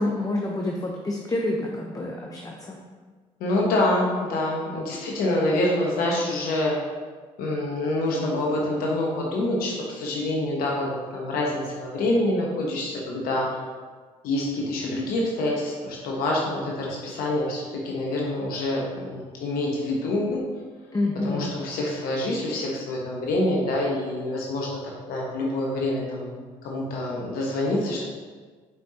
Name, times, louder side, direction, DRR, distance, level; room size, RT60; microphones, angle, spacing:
voice 1, 0.0-2.8 20.9-21.5, left 2 dB, 25° left, 0 dB, 0.9 m, -28 dB
voice 2, 3.4-6.7 7.4-13.5 14.2-20.4 21.2-24.8 25.1-28.1, left 1 dB, 70° left, -2 dB, 1.2 m, -26 dB
7.9 x 5.5 x 2.9 m, 1.5 s
hypercardioid pair, 55°, 16 cm